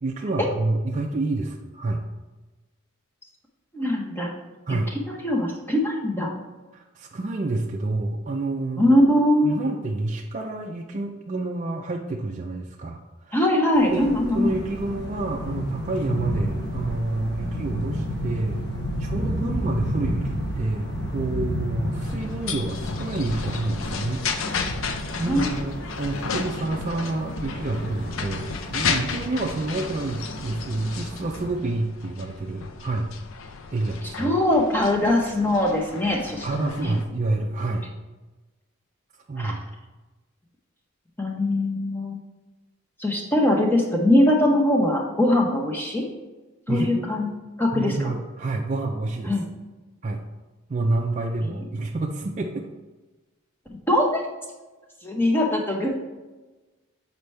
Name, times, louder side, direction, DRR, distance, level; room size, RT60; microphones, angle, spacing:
voice 1, 0.0-2.0 4.7-4.9 6.7-9.0 9.4-13.5 13.9-14.1 14.3-18.6 19.0-24.8 25.2-33.1 33.7-34.4 36.4-37.9 39.3-39.7 46.7-47.1 47.7-49.4 50.0-50.2 50.7-52.7, right 2 dB, 35° right, 0 dB, 0.3 m, -28 dB
voice 2, 3.7-4.3 5.1-6.3 8.8-9.6 13.3-14.5 19.4-19.5 25.3-25.5 34.2-36.5 36.8-37.0 39.4-39.6 41.2-42.2 43.0-46.0 46.7-47.3 47.6-47.9 49.3-49.5 51.5-51.6 53.9-54.2 55.0-55.9, left 1 dB, 10° left, 0 dB, 0.7 m, -21 dB
sound 1, 13.8-31.6, equal, 50° left, 0.9 m, -32 dB
sound 2, 22.0-37.0, left 5 dB, 65° left, 0.5 m, -33 dB
6.8 x 4.4 x 3.2 m, 1.2 s
head